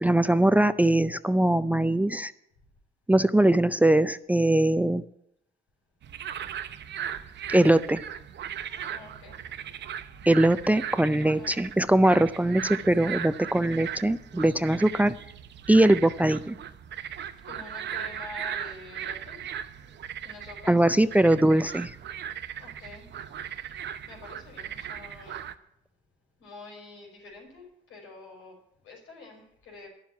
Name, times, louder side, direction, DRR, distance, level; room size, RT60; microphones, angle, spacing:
voice 1, 0.0-2.3 3.1-5.0 7.5-8.0 10.3-15.1 15.7-16.5 20.7-22.0, right 1 dB, 5° right, 14 dB, 0.4 m, -21 dB
sound 1, 6.0-25.5, right 9 dB, 60° right, 0.8 m, -38 dB
voice 2, 8.8-9.4 11.2-11.7 13.9-14.1 17.4-19.4 20.2-20.9 22.6-23.1 23.7-25.4 26.4-28.5 28.8-29.9, left 3 dB, 90° left, 0 dB, 5.3 m, -47 dB
11.0 x 7.4 x 9.3 m, 0.77 s
cardioid pair, 90°, 20 cm